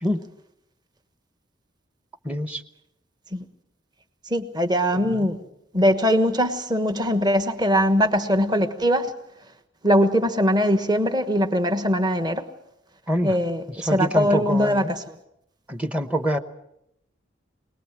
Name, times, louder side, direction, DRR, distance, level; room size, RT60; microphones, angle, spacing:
voice 1, 2.2-2.6 4.9-5.3 13.1-13.3 13.8-14.9 15.7-16.4, equal, 5° right, 10 dB, 0.9 m, -25 dB
voice 2, 4.3-5.4 5.7-9.1 9.8-12.4 13.2-15.1, equal, 20° right, 8 dB, 1.3 m, -21 dB
25.0 x 19.5 x 7.4 m, 0.80 s
head